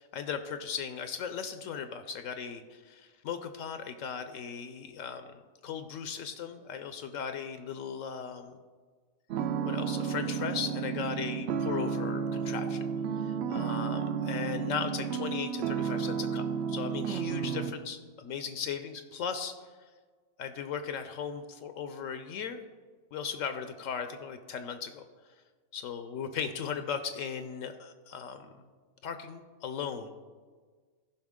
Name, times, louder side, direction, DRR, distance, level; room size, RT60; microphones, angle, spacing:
voice 1, 0.1-8.5 9.7-12.8 13.2-19.6 20.4-22.7 23.1-25.0 25.7-28.5 29.0-30.1, left 7 dB, 75° left, 9 dB, 0.9 m, -37 dB
sound 1, 9.3-17.7, right 6 dB, 65° right, 0.7 m, -32 dB
14.5 x 5.6 x 3.6 m, 1.5 s
omnidirectional pair, 1.4 m